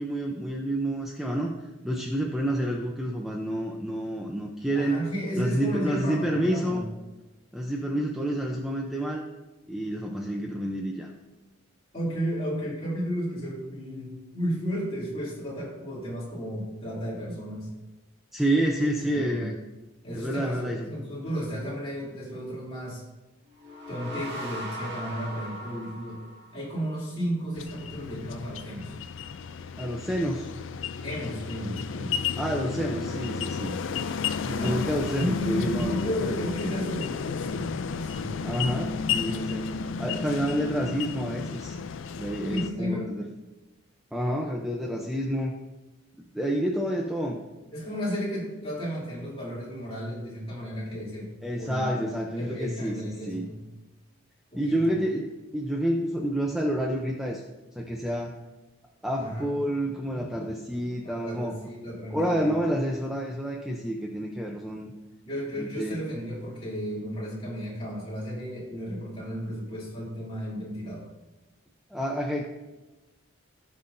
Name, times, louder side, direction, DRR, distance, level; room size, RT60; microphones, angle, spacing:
voice 1, 0.0-1.5 1.8-5.0 5.3-6.8 7.5-9.2 9.7-11.1 18.3-19.5 20.1-20.9 29.8-30.5 32.4-33.8 34.5-36.4 38.4-39.7 40.0-41.8 42.2-43.3 44.1-45.6 46.3-47.4 51.4-53.0 53.2-53.5 54.6-57.4 57.8-58.3 59.0-61.6 62.1-64.9 65.6-66.0 71.9-72.4, right 1 dB, ahead, 0 dB, 0.5 m, -29 dB
voice 2, 4.7-6.9 11.9-17.7 19.1-19.5 20.0-23.0 23.9-26.2 26.5-29.0 31.0-32.3 34.4-34.9 35.2-38.3 42.4-43.1 47.7-51.3 51.6-53.6 54.5-54.9 59.2-59.5 61.0-62.5 65.2-71.1, equal, 25° left, -6 dB, 2.8 m, -33 dB
sound 1, 23.5-27.0, equal, 50° right, 2.0 m, -39 dB
sound 2, 27.6-42.7, left 6 dB, 60° left, 0.4 m, -32 dB
17.0 x 5.6 x 2.6 m, 1.1 s
head